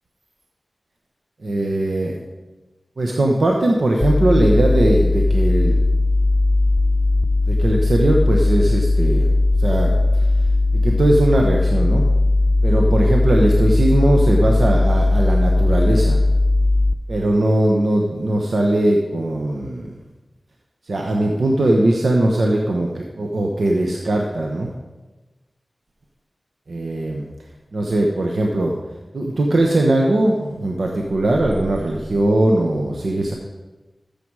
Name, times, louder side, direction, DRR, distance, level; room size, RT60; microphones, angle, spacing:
voice 1, 1.4-2.2 3.0-5.8 7.5-9.3 9.6-10.3 10.7-12.0 12.6-16.2 17.1-20.0 20.9-24.7 26.7-27.3 27.7-28.8 29.1-33.3, right 1 dB, 75° right, 0 dB, 1.0 m, -19 dB
sound 1, 4.0-16.9, left 2 dB, 40° left, 0.7 m, -17 dB
13.5 x 7.0 x 4.7 m, 1.2 s
wide cardioid pair, 70°, 0 cm